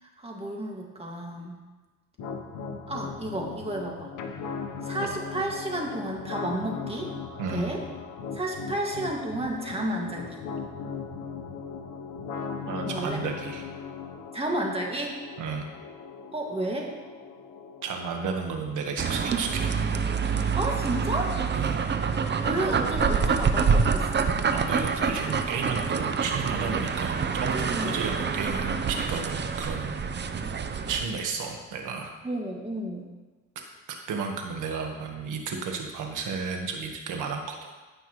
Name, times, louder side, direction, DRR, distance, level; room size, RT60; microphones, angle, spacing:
voice 1, 0.0-1.6 2.9-4.1 4.8-7.1 7.5-7.8 8.3-10.4 12.9-13.2 14.3-15.2 16.3-16.9 20.6-21.4 22.4-24.3 27.7-28.0 32.2-33.1, right 1 dB, 20° right, -1 dB, 2.1 m, -31 dB
sound 1, 2.2-18.2, left 5 dB, 80° left, 1.0 m, -38 dB
voice 2, 7.4-7.8 12.7-13.7 15.4-15.6 17.8-19.9 20.2-20.6 21.5-21.8 24.5-27.5 27.8-30.0 30.9-32.1 34.1-37.7, right 5 dB, 85° right, 3 dB, 1.5 m, -33 dB
sound 2, 19.0-31.1, right 5 dB, 35° right, 0.7 m, -26 dB
17.0 x 5.7 x 3.2 m, 1.3 s
cardioid pair, 90°, 30 cm